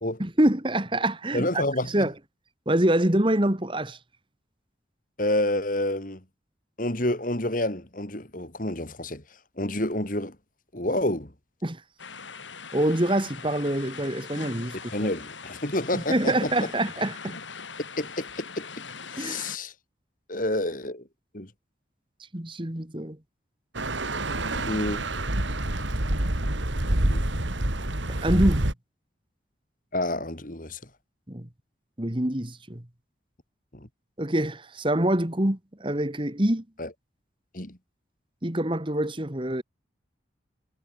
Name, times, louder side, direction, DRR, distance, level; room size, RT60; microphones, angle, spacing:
voice 1, 0.2-1.6 1.9-2.1 2.7-4.0 11.6-11.8 12.7-14.8 15.9-17.4 19.2-19.5 22.3-23.2 28.1-28.7 31.3-31.5 32.0-32.8 34.2-36.6 38.4-39.6, right 1 dB, 25° right, 1.8 m, -25 dB
voice 2, 1.3-2.1 5.2-6.2 6.8-9.2 9.6-10.4 10.7-11.3 14.9-16.7 18.0-19.7 20.3-21.0 21.3-21.5 24.5-25.0 27.1-27.2 29.9-30.8 33.7-33.9 36.8-36.9 37.5-37.8, left 1 dB, 45° left, 3.5 m, -29 dB
sound 1, 12.0-19.6, left 5 dB, 90° left, 5.6 m, -41 dB
sound 2, 23.7-28.7, right 1 dB, 85° right, 2.9 m, -27 dB
head